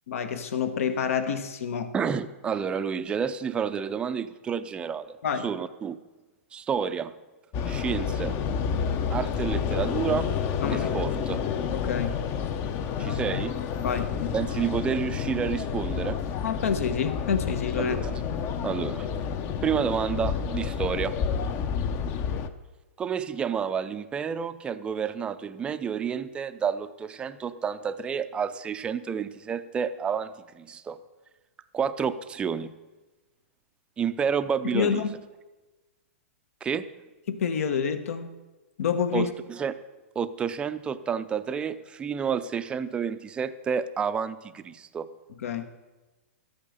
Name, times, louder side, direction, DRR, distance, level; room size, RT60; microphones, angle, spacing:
voice 1, 0.1-1.9 5.2-5.5 10.6-10.9 11.7-12.2 13.8-14.3 16.4-18.0 34.7-35.2 37.3-38.3 38.8-39.3 45.4-45.7, left 7 dB, 70° left, 10 dB, 1.2 m, -28 dB
voice 2, 1.9-5.2 5.4-6.0 6.5-7.1 7.7-8.4 9.1-10.3 10.7-11.4 13.0-13.6 14.3-16.2 17.8-18.1 18.6-19.1 19.6-21.1 23.0-31.0 31.7-32.7 34.0-35.0 36.6-36.8 39.1-39.8 40.2-45.1, right 7 dB, 15° right, 12 dB, 0.5 m, -30 dB
sound 1, 7.5-22.5, left 7 dB, 30° left, 0.7 m, -29 dB
13.0 x 8.6 x 6.6 m, 1.2 s
hypercardioid pair, 145°, 8 cm